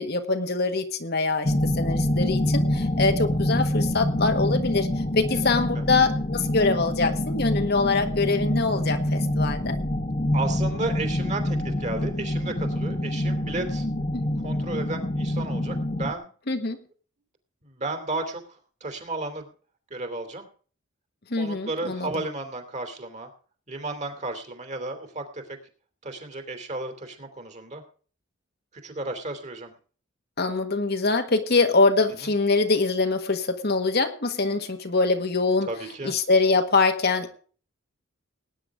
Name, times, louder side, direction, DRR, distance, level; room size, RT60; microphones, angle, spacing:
voice 1, 0.0-4.9 5.1-9.8 14.1-14.3 16.5-16.8 21.3-22.1 30.4-35.7 36.0-37.4, left 3 dB, 50° left, 6 dB, 1.5 m, -24 dB
sound 1, 1.4-16.1, left 1 dB, 35° left, 1.3 m, -26 dB
voice 2, 10.3-13.9 14.4-16.3 17.6-19.5 19.9-20.5 21.4-23.3 23.7-25.4 26.0-27.8 28.7-29.7 32.2-32.3 35.6-36.2, right 2 dB, 35° right, 6 dB, 2.8 m, -33 dB
19.0 x 9.8 x 3.6 m, 0.41 s
head